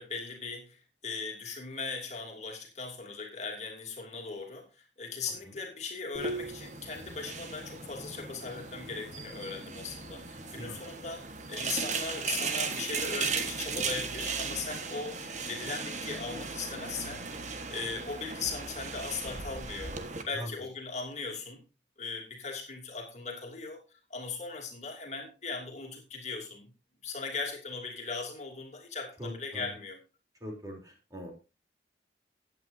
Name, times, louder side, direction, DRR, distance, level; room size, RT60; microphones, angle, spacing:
voice 1, 0.0-15.2 15.5-17.3 17.7-20.0 20.3-21.6 22.0-26.7 27.0-30.0, left 4 dB, 40° left, 1 dB, 2.9 m, -39 dB
sound 1, 6.1-20.2, right 4 dB, 40° right, 1.4 m, -37 dB
voice 2, 10.4-10.8 20.3-20.5 29.2-29.7 30.4-31.3, equal, 20° right, 1 dB, 3.4 m, -41 dB
16.0 x 9.2 x 2.7 m, 0.29 s
head